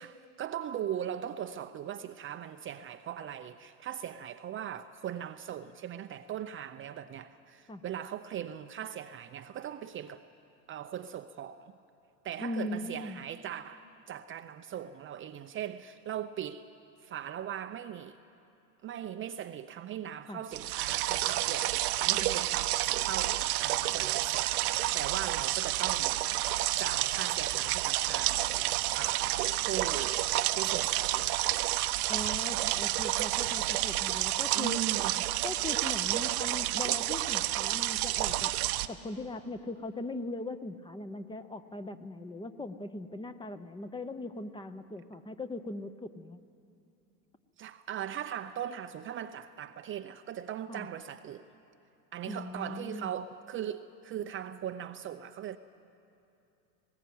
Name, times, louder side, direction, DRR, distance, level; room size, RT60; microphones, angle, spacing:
voice 1, 0.0-10.2 10.7-11.8 12.2-16.7 17.0-18.2 18.8-26.2 26.8-28.4 28.9-30.3 30.6-31.5 34.5-35.1 47.6-51.4 52.1-55.6, right 10 dB, 25° right, 0.6 m, -39 dB
voice 2, 12.4-13.2 20.3-20.4 32.1-34.8 35.4-38.5 38.9-46.4 50.7-50.9 52.2-53.1, left 2 dB, 10° left, 0.7 m, -39 dB
sound 1, 20.5-38.9, right 16 dB, 65° right, 0.9 m, -30 dB
20.0 x 18.0 x 8.6 m
hypercardioid pair, 95°, 48 cm